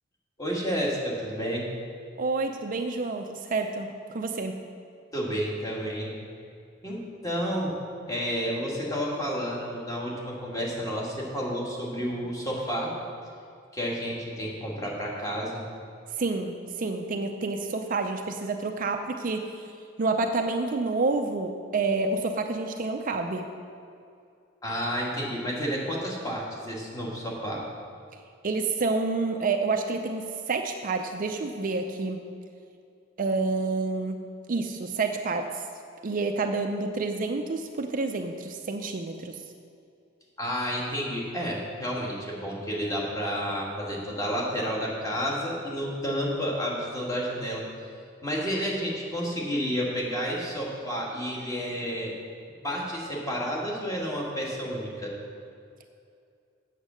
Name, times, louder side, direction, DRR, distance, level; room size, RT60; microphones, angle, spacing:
voice 1, 0.4-1.7 5.1-6.1 6.8-7.8 8.1-12.9 13.7-15.6 24.6-27.6 40.4-47.6 48.2-52.1 52.6-55.1, equal, 15° left, -3 dB, 1.9 m, -30 dB
voice 2, 2.2-4.5 16.2-19.7 20.0-23.4 28.4-32.2 33.2-34.2 34.5-35.6 36.0-39.4, right 3 dB, 40° right, 5 dB, 0.5 m, -28 dB
8.3 x 7.3 x 6.3 m, 2.4 s
head